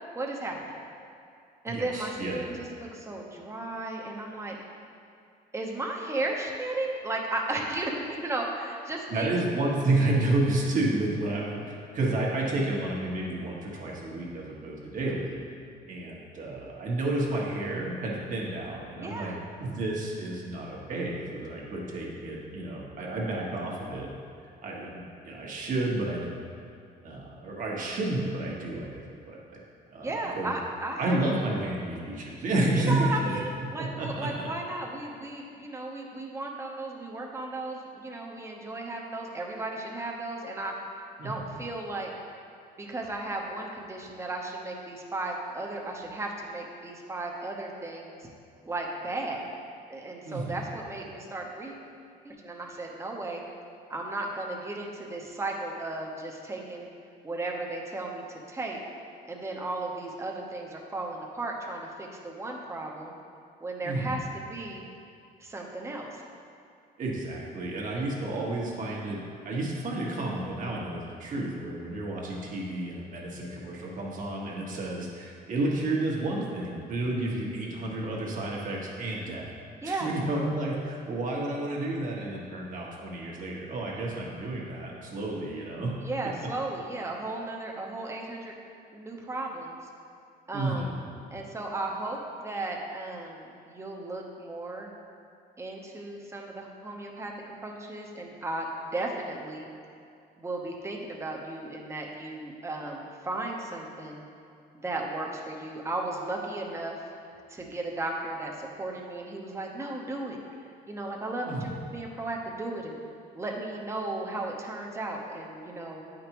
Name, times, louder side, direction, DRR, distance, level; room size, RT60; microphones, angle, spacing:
voice 1, 0.1-0.6 1.6-4.6 5.5-9.4 19.0-19.4 30.0-31.2 32.7-42.1 42.8-48.2 48.6-49.5 49.9-51.8 52.2-53.4 53.9-56.9 57.2-58.8 59.2-63.1 63.6-64.9 65.4-66.2 79.8-80.1 85.9-88.5 88.9-89.8 90.5-91.0 91.3-94.9 95.6-97.3 97.6-99.7 100.4-104.2 104.7-107.0 107.5-110.4 110.9-113.0 113.3-116.0, right 2 dB, 15° right, 0 dB, 0.9 m, -35 dB
voice 2, 1.7-2.4 9.1-15.4 15.9-19.3 19.6-24.1 24.6-26.2 27.0-29.4 29.9-30.5 31.0-33.4 33.8-34.5 41.2-41.5 50.2-50.6 63.8-64.1 67.0-79.5 79.8-85.9 86.2-86.3 90.5-91.0 111.5-111.8, right 2 dB, 50° right, -3 dB, 1.4 m, -31 dB
8.7 x 5.2 x 3.0 m, 2.4 s
cardioid pair, 110°, 17 cm